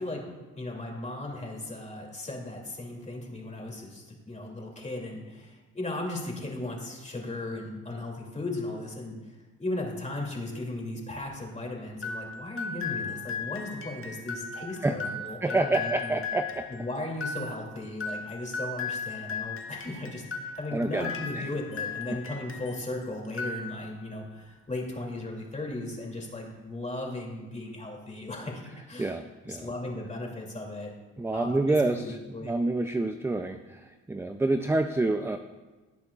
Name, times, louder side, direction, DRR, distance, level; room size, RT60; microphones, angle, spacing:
voice 1, 0.0-16.2 16.7-29.1 29.5-30.9 31.3-32.5, left 2 dB, 25° left, 0 dB, 2.7 m, -36 dB
sound 1, 12.0-22.9 23.3-24.1, left 5 dB, 45° left, 1.3 m, -37 dB
voice 2, 15.4-16.7 20.7-21.5 29.0-29.7 31.2-35.4, right 2 dB, 10° right, 7 dB, 0.4 m, -28 dB
18.0 x 8.3 x 2.4 m, 1.2 s
cardioid pair, 90°, 30 cm